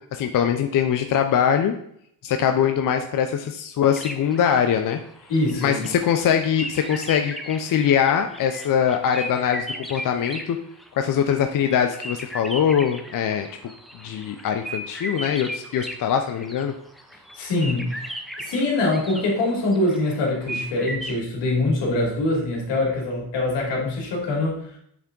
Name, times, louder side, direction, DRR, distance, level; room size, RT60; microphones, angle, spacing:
voice 1, 0.1-1.7 2.2-5.0 5.6-10.6 10.9-13.5 14.0-16.7, left 8 dB, 50° left, 5 dB, 0.6 m, -22 dB
sound 1, 3.9-11.0 11.3-21.2, equal, ahead, 0.5 m, -36 dB
voice 2, 5.3-5.8 17.3-24.6, left 2 dB, 85° left, -3 dB, 2.4 m, -24 dB
7.1 x 3.5 x 3.8 m, 0.68 s
cardioid pair, 105°, 41 cm